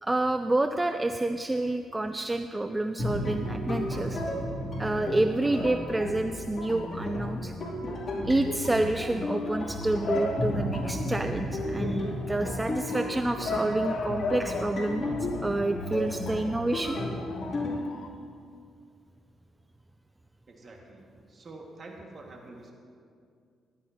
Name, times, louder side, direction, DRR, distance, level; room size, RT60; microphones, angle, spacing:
voice 1, 0.0-4.2 4.8-7.5 8.2-15.0 15.4-17.0, right 2 dB, 15° right, 8 dB, 0.3 m, -28 dB
sound 1, 3.0-17.8, left 1 dB, 40° left, 2.8 m, -33 dB
Bark / Motor vehicle (road) / Siren, 9.3-18.1, left 2 dB, 65° left, 0.7 m, -38 dB
voice 2, 20.5-22.7, right 2 dB, 40° right, 0 dB, 1.8 m, -47 dB
14.5 x 11.5 x 2.9 m, 2.3 s
cardioid pair, 90°, 0 cm